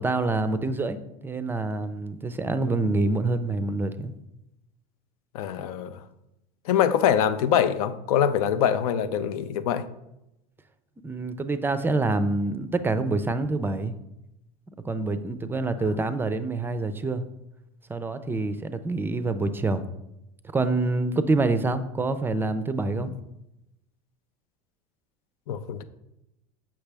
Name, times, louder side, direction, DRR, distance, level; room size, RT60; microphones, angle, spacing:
voice 1, 0.0-4.1 11.0-13.9 14.7-17.2 17.9-19.8 20.5-23.1, right 3 dB, 10° right, 11 dB, 0.4 m, -26 dB
voice 2, 5.3-6.0 6.7-9.8 23.0-23.1 25.5-25.8, left 9 dB, 85° left, 13 dB, 0.5 m, -24 dB
7.0 x 5.9 x 3.4 m, 0.90 s
supercardioid pair, 120°, 18 cm